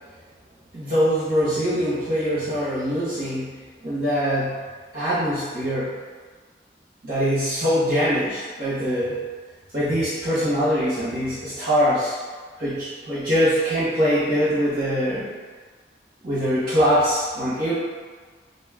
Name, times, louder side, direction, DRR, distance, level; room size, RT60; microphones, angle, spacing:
voice 1, 0.7-3.5 3.8-4.6 4.9-6.0 7.0-9.2 9.7-12.2 12.6-15.3 16.2-17.7, equal, 50° right, -12 dB, 0.8 m, -23 dB
2.5 x 2.2 x 3.5 m, 1.5 s
head